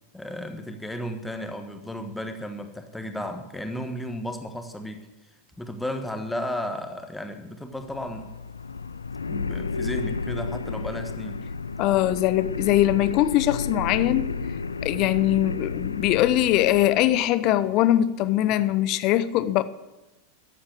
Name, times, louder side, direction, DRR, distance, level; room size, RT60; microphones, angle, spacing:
voice 1, 0.1-5.0 5.6-8.3 9.3-11.4, left 1 dB, 5° left, 1.4 m, -34 dB
sound 1, 7.7-17.3, left 4 dB, 75° left, 0.4 m, -32 dB
voice 2, 11.8-14.4 14.8-19.6, left 13 dB, 40° left, 0.7 m, -22 dB
13.0 x 8.2 x 7.9 m
figure-of-eight pair, 90°, 0 cm